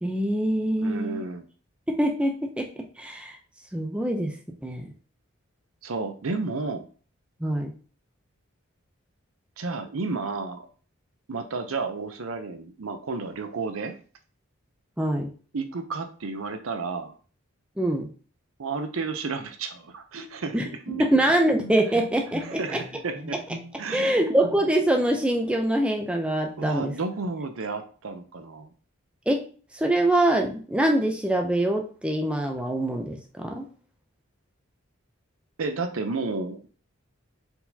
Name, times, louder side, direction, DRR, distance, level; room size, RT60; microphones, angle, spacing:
voice 1, 0.0-1.2 1.9-3.4 3.7-4.3 4.6-4.8 7.4-7.7 15.0-15.3 17.8-18.1 20.5-20.6 21.0-22.8 23.9-26.9 29.3-29.4 29.7-33.7, right 1 dB, 5° right, 2 dB, 0.5 m, -24 dB
voice 2, 0.8-1.5 5.8-6.9 9.6-10.7 11.3-14.0 15.5-17.1 18.6-21.0 22.4-23.4 23.8-24.2 26.6-28.7 35.6-36.7, right 4 dB, 80° right, 8 dB, 0.6 m, -32 dB
Bowed string instrument, 20.1-25.0, right 2 dB, 65° right, 1.1 m, -41 dB
4.5 x 4.0 x 2.7 m, 0.40 s
head